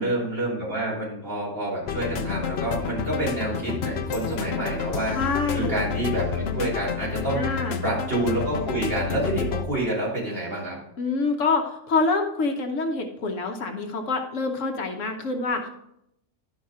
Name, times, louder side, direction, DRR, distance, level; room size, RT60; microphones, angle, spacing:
voice 1, 0.0-5.2 5.5-7.5 7.8-10.8, right 1 dB, 45° right, -6 dB, 3.5 m, -28 dB
sound 1, 1.9-9.6, left 7 dB, 60° left, 0.9 m, -29 dB
voice 2, 5.1-5.7 7.4-7.8 11.0-15.7, left 3 dB, 75° left, 4 dB, 1.3 m, -26 dB
11.0 x 5.8 x 3.7 m, 0.77 s
omnidirectional pair, 1.3 m